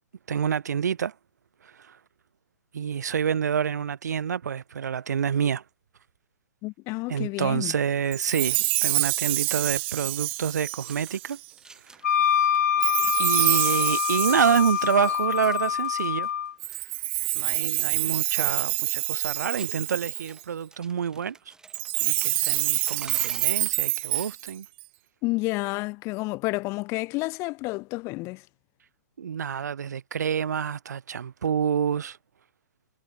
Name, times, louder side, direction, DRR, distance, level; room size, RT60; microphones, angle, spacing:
voice 1, 0.3-1.1 1.6-2.0 2.7-5.6 7.1-11.4 13.2-16.3 17.3-21.5 22.0-24.7 29.2-32.2, right 7 dB, 80° right, 1.4 m, -27 dB
voice 2, 6.6-7.7 25.2-28.4, left 23 dB, 30° left, 0.9 m, -30 dB
Chime, 8.1-11.5 12.8-15.7 16.6-20.4 21.7-24.8, right 21 dB, 40° right, 0.4 m, -27 dB
sound 1, 10.9-12.1 12.4-13.1 13.4-16.5 16.7-18.5 18.7-18.8 19.5-24.3, right 3 dB, 5° right, 5.0 m, -49 dB
Wind instrument woodwind instrument, 12.0-16.5, left 9 dB, 75° left, 1.1 m, -25 dB
hypercardioid pair, 135°, 9 cm